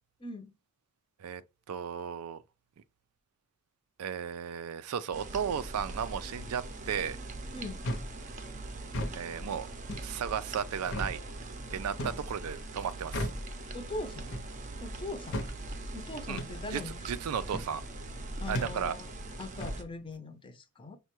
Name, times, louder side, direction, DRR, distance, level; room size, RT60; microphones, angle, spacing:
voice 1, 0.2-0.5 7.5-7.8 13.7-14.4 14.8-15.5 15.9-17.0 18.4-19.1 19.4-21.0, left 2 dB, 25° left, 0.5 m, -41 dB
voice 2, 1.7-2.4 4.0-7.2 9.1-9.7 10.0-11.2 11.7-13.3 16.3-16.4 16.7-16.8 17.1-17.8 18.5-18.9, right 7 dB, 85° right, 0.4 m, -34 dB
sound 1, 5.1-19.8, right 2 dB, 35° right, 0.5 m, -42 dB
sound 2, 7.8-8.1 8.8-9.2 9.9-10.1 10.9-11.2 12.0-12.3 13.1-13.4 14.3-14.5 15.3-15.5 16.4-16.5 17.5-17.7 18.5-18.8 19.6-19.8, left 1 dB, 65° left, 0.7 m, -35 dB
5.4 x 2.2 x 2.9 m
head